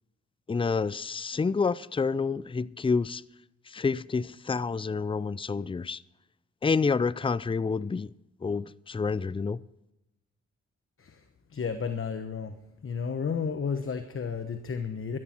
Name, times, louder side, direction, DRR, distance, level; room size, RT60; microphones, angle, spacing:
voice 1, 0.5-3.2 3.7-6.0 6.6-8.1 8.4-9.6, left 4 dB, 20° left, 0.5 m, -28 dB
voice 2, 11.5-12.6 12.8-15.2, left 6 dB, 45° left, 1.1 m, -32 dB
14.0 x 13.5 x 4.5 m
cardioid pair, 50°, 29 cm